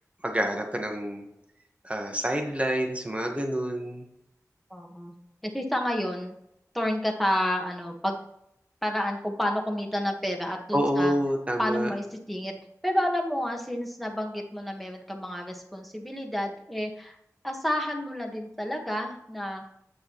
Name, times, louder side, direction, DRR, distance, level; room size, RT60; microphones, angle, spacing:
voice 1, 0.2-1.3 1.8-4.1 10.7-11.9, equal, 20° right, 3 dB, 1.5 m, -27 dB
voice 2, 4.7-5.1 5.4-6.3 6.7-8.2 8.8-11.1 11.6-12.5 12.8-17.2 17.4-19.6, equal, ahead, 1 dB, 1.6 m, -30 dB
8.8 x 6.5 x 3.2 m, 0.79 s
wide cardioid pair, 40°, 6 cm